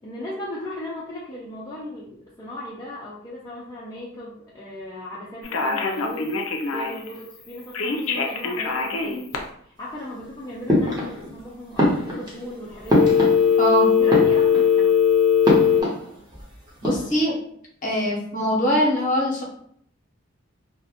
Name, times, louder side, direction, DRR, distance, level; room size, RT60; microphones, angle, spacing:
voice 1, 0.0-6.4 6.7-9.3 9.6-13.2 13.9-14.9, left 1 dB, 20° left, -7 dB, 0.4 m, -37 dB
Telephone, 5.4-7.1 7.7-9.4 12.9-15.8, left 7 dB, 90° left, 0.4 m, -20 dB
sound 1, 10.7-11.4 11.7-13.7 14.0-14.8 15.4-16.4 16.7-17.2, left 1 dB, 20° right, 0.7 m, -23 dB
voice 2, 13.6-13.9 16.8-17.4 17.8-19.4, equal, 40° left, -2 dB, 0.7 m, -22 dB
2.4 x 2.1 x 2.7 m, 0.65 s
head